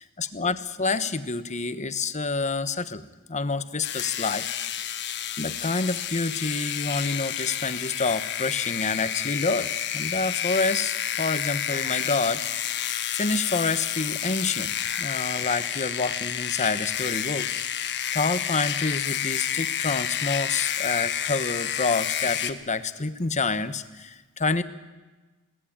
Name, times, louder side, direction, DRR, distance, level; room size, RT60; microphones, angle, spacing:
voice 1, 0.0-3.0 3.3-4.5 5.4-12.4 13.1-17.5 18.1-24.6, left 4 dB, 35° left, 11 dB, 1.2 m, -28 dB
sound 1, 3.8-22.5, left 9 dB, 50° left, 1.4 m, -30 dB
22.5 x 17.5 x 8.7 m, 1.2 s
head